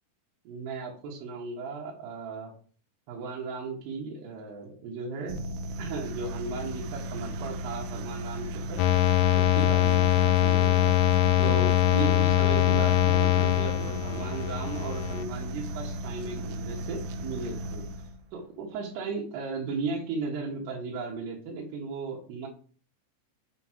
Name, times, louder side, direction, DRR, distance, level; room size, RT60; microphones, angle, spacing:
voice 1, 0.4-2.5 3.1-5.5 5.8-8.8 9.3-11.0 11.4-17.8 18.3-22.5, right 4 dB, 70° right, -3 dB, 3.3 m, -36 dB
sound 1, 5.3-18.3, right 1 dB, 90° right, 2.0 m, -36 dB
sound 2, 8.8-15.2, left 14 dB, 85° left, 2.2 m, -23 dB
6.8 x 6.0 x 4.8 m, 0.43 s
omnidirectional pair, 5.1 m